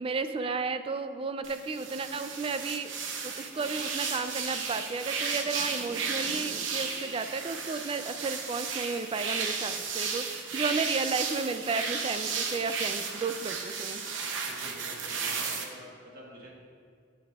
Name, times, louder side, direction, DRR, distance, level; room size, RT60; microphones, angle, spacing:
voice 1, 0.0-2.9 3.2-14.0, right 4 dB, 30° right, 10 dB, 0.3 m, -33 dB
sound 1, 1.4-15.6, right 5 dB, 80° right, 0.8 m, -34 dB
voice 2, 14.4-16.6, right 1 dB, 55° right, -3 dB, 1.4 m, -48 dB
9.2 x 8.2 x 2.4 m, 2.2 s
head